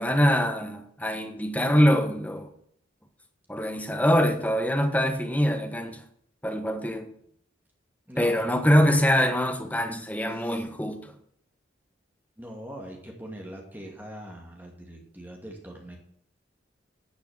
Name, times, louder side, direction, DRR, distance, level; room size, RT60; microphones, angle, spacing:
voice 1, 0.0-2.5 3.5-6.0 6.4-7.1 8.2-11.0, equal, 10° left, 1.4 m, -24 dB
voice 2, 8.1-8.5 10.3-10.6 12.4-16.0, equal, 10° right, 2.3 m, -42 dB
11.5 x 6.7 x 7.9 m
head